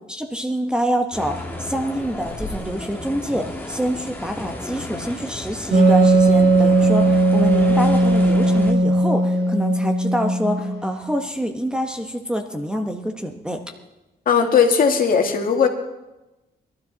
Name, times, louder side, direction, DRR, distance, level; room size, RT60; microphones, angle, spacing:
voice 1, 0.1-13.6, equal, 5° right, 4 dB, 1.1 m, -26 dB
sound 1, 1.1-8.7, left 1 dB, 10° left, 1.9 m, -33 dB
Wind instrument woodwind instrument, 5.7-11.1, right 2 dB, 85° right, 5.7 m, -17 dB
voice 2, 14.3-15.7, left 6 dB, 55° left, 3 dB, 1.9 m, -17 dB
22.0 x 12.5 x 4.0 m, 1.0 s
cardioid pair, 140°, 17 cm